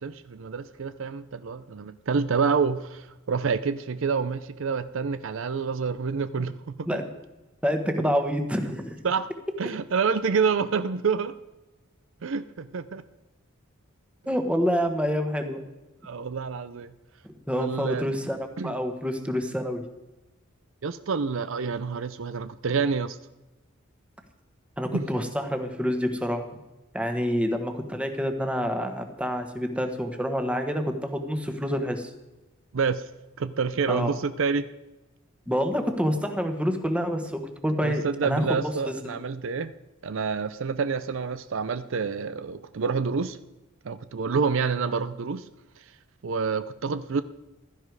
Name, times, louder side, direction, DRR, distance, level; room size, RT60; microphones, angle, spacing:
voice 1, 0.0-6.9 9.0-9.3 9.6-11.3 12.2-13.0 16.0-16.9 17.5-18.1 18.6-18.7 20.8-23.2 24.9-25.0 32.7-33.0 33.4-34.7 37.8-39.7 40.0-43.4 43.8-45.5 46.2-47.2, right 5 dB, 65° right, 13 dB, 0.5 m, -28 dB
voice 2, 7.6-8.9 14.3-15.6 17.2-19.8 24.8-26.4 26.9-32.1 33.9-34.2 35.5-39.1, equal, 5° right, 5 dB, 1.4 m, -27 dB
15.5 x 12.5 x 4.8 m, 1.1 s
head